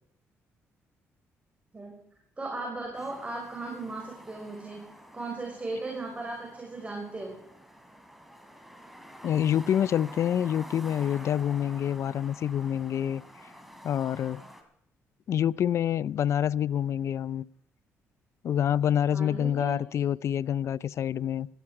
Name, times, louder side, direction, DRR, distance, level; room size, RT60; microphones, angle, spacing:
voice 1, 2.4-4.8 5.1-7.4 19.1-19.8, right 2 dB, 25° right, 5.3 m, -36 dB
sound 1, 2.9-14.6, equal, ahead, 3.4 m, -49 dB
voice 2, 9.2-13.2 13.8-14.4 15.3-17.4 18.4-21.5, left 10 dB, 60° left, 0.5 m, -27 dB
17.5 x 13.5 x 4.8 m
supercardioid pair, 75°, 5 cm